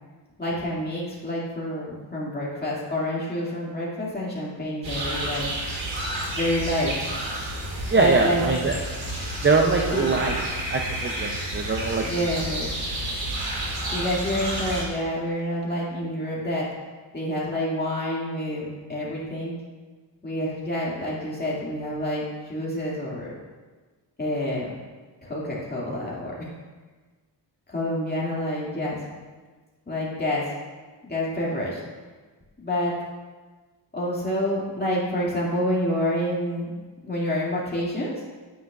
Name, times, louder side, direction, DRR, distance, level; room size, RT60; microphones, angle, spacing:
voice 1, 0.4-5.5 6.3-6.9 7.9-8.4 9.9-10.1 12.0-12.7 13.9-16.7 17.1-19.5 20.2-23.3 24.2-24.7 25.2-26.3 27.7-29.0 29.9-30.5 31.0-31.8 32.6-32.9 33.9-36.8 37.0-38.1, left 1 dB, 20° left, -6 dB, 2.2 m, -28 dB
sound 1, 4.8-14.8, right 1 dB, 80° right, 2.4 m, -30 dB
voice 2, 7.9-8.7 9.4-10.3 10.7-12.0, right 4 dB, 25° right, 1 dB, 0.5 m, -22 dB
9.3 x 9.3 x 2.4 m, 1.4 s
wide cardioid pair, 130°, 44 cm